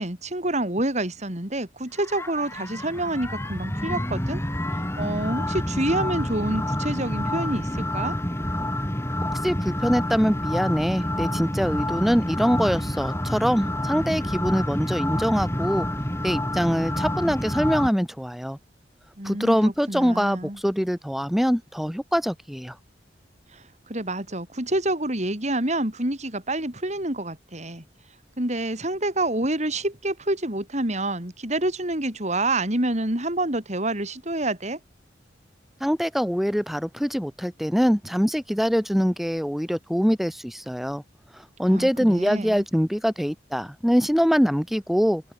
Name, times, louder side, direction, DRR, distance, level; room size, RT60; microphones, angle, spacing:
voice 1, 0.0-4.4 4.7-8.1 19.2-20.6 23.5-27.8 28.4-34.8 41.6-42.6, right 1 dB, 40° right, 4.6 m, -27 dB
sound 1, 2.0-17.9, left 1 dB, 15° left, 5.4 m, -28 dB
voice 2, 9.4-15.9 16.2-18.6 19.2-22.7 35.8-41.0 41.6-45.2, equal, ahead, 5.5 m, -23 dB
open air
head